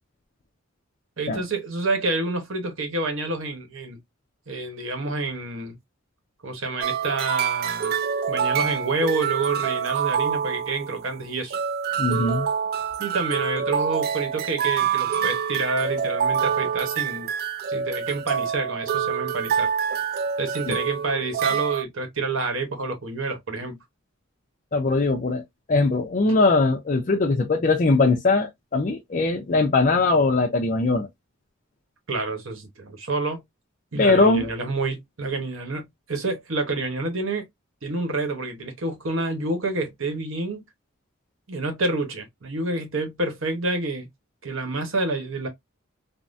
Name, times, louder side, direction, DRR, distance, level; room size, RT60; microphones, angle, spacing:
voice 1, 1.2-4.0 4.5-5.8 6.4-8.0 8.3-11.6 13.0-17.3 17.7-19.7 20.4-23.8 26.3-26.4 32.1-33.4 33.9-37.4 37.8-40.6 41.5-44.1 44.4-45.5, right 3 dB, 75° right, 1.0 m, -28 dB
sound 1, 6.8-21.8, right 7 dB, 45° right, 0.3 m, -26 dB
voice 2, 12.0-12.5 20.7-20.8 24.7-25.4 25.7-31.1 34.0-34.5, left 3 dB, 40° left, 0.5 m, -21 dB
3.5 x 2.0 x 2.5 m
head